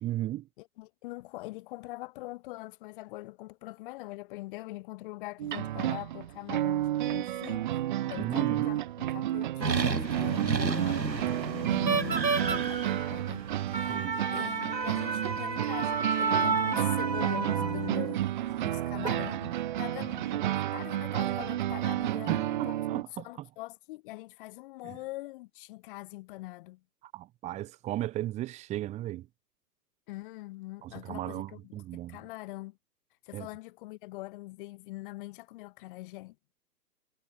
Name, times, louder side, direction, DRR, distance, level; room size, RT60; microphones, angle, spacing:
voice 1, 0.0-0.5 8.2-8.8 13.9-14.2 22.3-23.2 27.1-29.3 30.8-32.2 33.3-33.5, right 14 dB, 15° right, 1.7 m, -35 dB
voice 2, 0.6-7.7 8.1-13.7 14.3-22.8 23.2-26.8 30.1-32.8 33.2-36.4, left 20 dB, 30° left, 4.7 m, -43 dB
sound 1, 5.4-23.0, right 13 dB, 30° right, 1.0 m, -31 dB
sound 2, 9.6-18.1 18.8-19.1, right 4 dB, 80° right, 2.8 m, -31 dB
figure-of-eight pair, 135°, 50 cm